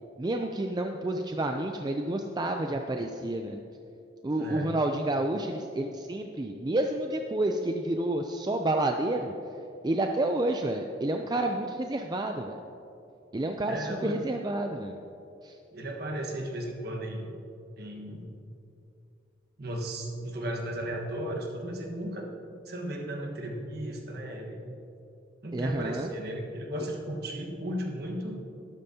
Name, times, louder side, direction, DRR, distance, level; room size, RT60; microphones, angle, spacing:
voice 1, 0.2-3.6 4.2-9.3 9.8-12.6 13.3-15.0 15.4-15.5 25.5-26.1, right 1 dB, 20° right, 4 dB, 0.4 m, -29 dB
voice 2, 4.4-4.8 13.7-14.2 15.7-17.4 17.8-18.4 19.6-22.3 22.6-24.7 25.4-28.4, right 1 dB, 55° right, 1 dB, 1.4 m, -35 dB
12.5 x 12.0 x 2.8 m, 2.6 s
head